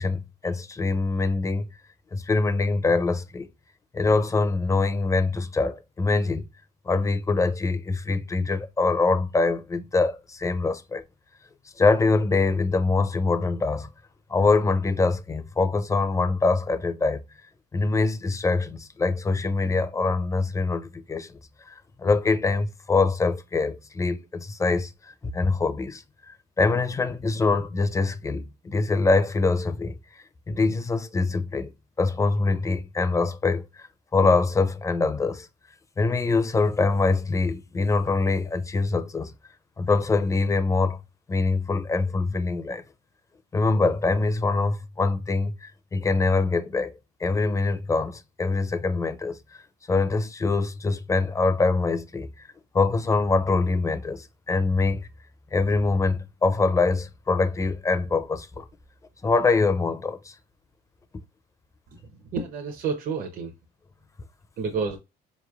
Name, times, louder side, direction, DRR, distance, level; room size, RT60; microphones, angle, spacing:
voice 1, 0.0-1.7 2.1-3.5 3.9-6.4 6.9-11.0 11.8-13.9 14.3-17.2 17.7-21.4 21.7-30.0 30.5-31.7 32.0-33.9 34.1-35.5 36.0-39.3 39.8-41.0 41.3-42.8 43.5-46.9 47.2-49.6 49.9-52.5 52.7-55.1 55.5-58.7 59.2-60.3, left 3 dB, 20° left, 0.4 m, -24 dB
voice 2, 61.9-63.5 64.6-65.0, right 5 dB, 55° right, 0.7 m, -30 dB
4.5 x 3.0 x 2.3 m
cardioid pair, 110°, 17 cm